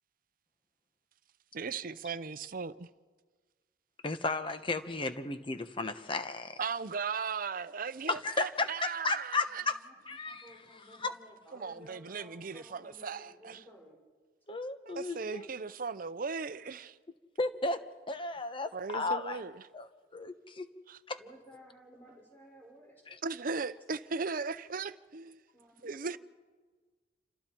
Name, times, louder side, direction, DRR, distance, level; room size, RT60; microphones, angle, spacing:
voice 1, 1.5-2.9 6.6-9.6 11.5-13.6 14.9-17.0 18.7-19.6 20.9-21.0 23.2-25.4 25.8-26.2, right 5 dB, 50° right, 0.7 m, -37 dB
voice 2, 4.0-6.6 8.1-9.8 10.1-11.1 14.5-15.5 17.4-19.4 19.7-20.7 21.1-21.2 23.1-23.2, left 3 dB, 30° left, 1.2 m, -34 dB
voice 3, 10.2-14.0 21.2-23.0 25.5-26.2, equal, 10° left, 5.6 m, -55 dB
28.5 x 26.5 x 4.6 m
head